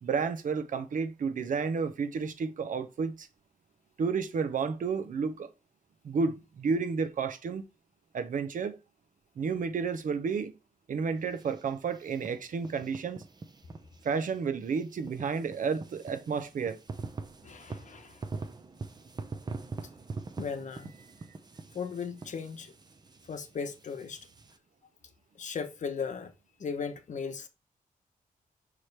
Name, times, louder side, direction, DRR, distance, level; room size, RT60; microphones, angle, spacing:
voice 1, 0.0-3.3 4.0-5.5 6.0-7.6 8.1-8.8 9.4-10.6 10.9-13.2 14.0-16.8, right 5 dB, 70° right, 0.8 m, -31 dB
sound 1, 11.1-24.6, right 3 dB, 30° right, 0.7 m, -44 dB
voice 2, 17.4-18.3 20.4-20.9 21.7-22.7 23.3-24.3 25.3-26.3 26.6-27.5, left 6 dB, 60° left, 1.0 m, -37 dB
5.9 x 4.8 x 3.3 m
wide cardioid pair, 130°, 14 cm